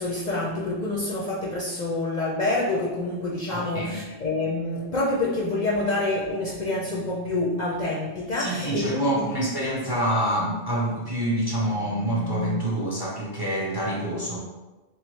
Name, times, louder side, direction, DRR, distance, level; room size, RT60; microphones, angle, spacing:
voice 1, 0.0-9.5, left 2 dB, 50° left, -4 dB, 0.6 m, -27 dB
voice 2, 3.5-4.0 8.3-14.4, right 1 dB, 25° right, -4 dB, 0.6 m, -27 dB
sound 1, 6.0-8.0 11.0-12.6, left 2 dB, 75° left, 0.9 m, -37 dB
3.9 x 3.1 x 3.1 m, 1.2 s
omnidirectional pair, 1.2 m